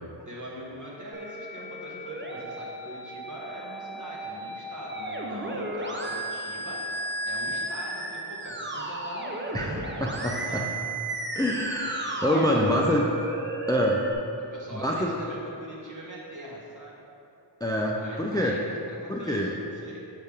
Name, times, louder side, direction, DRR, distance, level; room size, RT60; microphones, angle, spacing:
voice 1, 0.2-10.7 12.3-13.1 14.4-17.0 18.0-19.5 19.8-20.1, equal, 40° right, -5 dB, 1.5 m, -41 dB
Musical instrument, 1.1-14.1, right 1 dB, 25° right, 0.7 m, -34 dB
voice 2, 9.5-10.6 11.4-13.1 13.7-14.1 14.7-15.1 17.6-18.6 19.1-19.6, equal, 10° left, -1 dB, 0.4 m, -26 dB
6.4 x 5.5 x 3.6 m, 2.7 s
wide cardioid pair, 50°, 46 cm